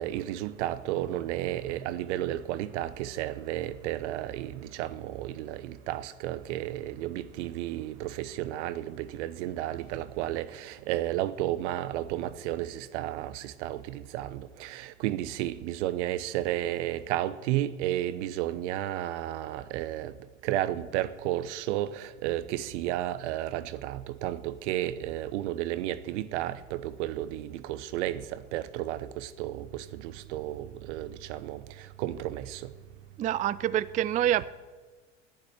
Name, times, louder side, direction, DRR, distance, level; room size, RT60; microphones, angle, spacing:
voice 1, 0.0-20.1 20.4-32.7, right 13 dB, 65° right, 0.9 m, -32 dB
voice 2, 33.2-34.4, right 11 dB, 20° right, 0.4 m, -26 dB
10.5 x 10.5 x 8.9 m
hypercardioid pair, 70°, 37 cm